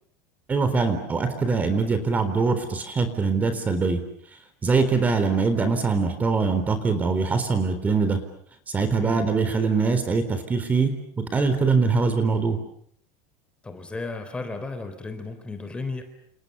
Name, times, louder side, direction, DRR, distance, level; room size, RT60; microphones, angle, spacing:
voice 1, 0.5-4.0 4.6-8.2 8.7-12.6, right 4 dB, 20° right, 10 dB, 3.9 m, -23 dB
voice 2, 9.0-9.3 13.6-16.0, left 3 dB, 10° left, 7 dB, 3.7 m, -34 dB
29.5 x 29.5 x 6.9 m, 0.66 s
cardioid pair, 150°, 9 cm